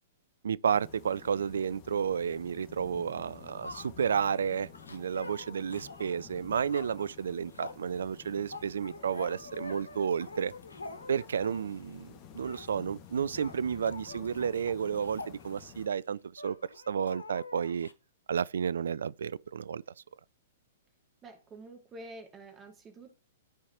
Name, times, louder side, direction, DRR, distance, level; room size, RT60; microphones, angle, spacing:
voice 1, 0.4-10.5 11.1-16.6 16.9-17.9 18.3-19.8, right 7 dB, 70° right, 0.3 m, -31 dB
sound 1, 0.7-15.9, left 8 dB, 40° left, 1.7 m, -52 dB
sound 2, 3.3-11.8 12.3-12.7 13.0-13.1 13.3-15.9 16.4-17.9, left 3 dB, 85° left, 0.9 m, -46 dB
voice 2, 21.2-23.1, right 2 dB, 20° right, 2.4 m, -48 dB
13.5 x 4.7 x 2.9 m
figure-of-eight pair, 110°, 0 cm